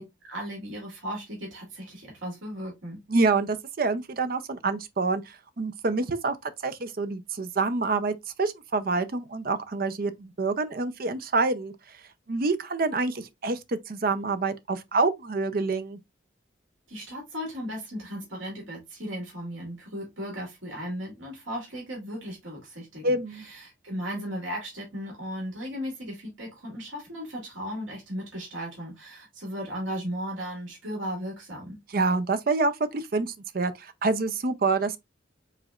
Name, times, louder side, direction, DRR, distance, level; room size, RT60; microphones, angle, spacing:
voice 1, 0.0-3.0 16.9-31.8, equal, 80° right, 2.1 m, -36 dB
voice 2, 3.1-11.7 12.3-16.0 23.0-23.5 31.9-35.0, right 3 dB, 45° right, 0.5 m, -27 dB
5.0 x 4.0 x 2.4 m
head